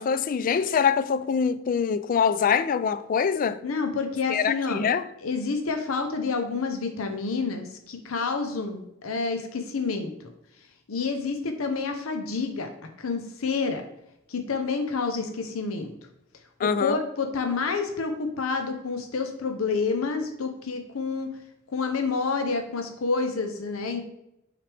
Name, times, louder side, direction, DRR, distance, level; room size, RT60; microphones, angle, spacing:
voice 1, 0.0-3.6 4.3-5.0 16.6-17.0, left 6 dB, 40° left, 0.3 m, -24 dB
voice 2, 3.6-4.8 5.2-10.1 10.9-12.7 13.0-13.8 14.3-15.9 16.8-21.3 21.7-24.0, left 4 dB, 85° left, 0.7 m, -28 dB
5.9 x 4.9 x 3.3 m
head